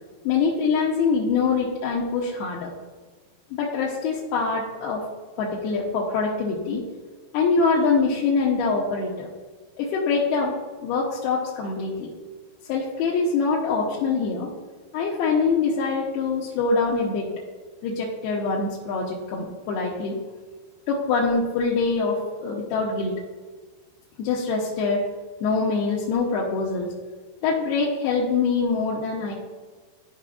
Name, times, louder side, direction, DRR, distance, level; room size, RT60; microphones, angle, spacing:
voice 1, 0.2-2.7 3.5-5.0 5.4-6.8 7.3-9.3 9.8-10.6 10.8-12.1 12.7-14.5 14.9-17.3 17.8-20.2 20.9-23.2 24.2-25.0 25.4-26.9 27.4-29.3, left 4 dB, 90° left, -5 dB, 2.9 m, -24 dB
12.5 x 5.0 x 2.4 m, 1.4 s
omnidirectional pair, 4.4 m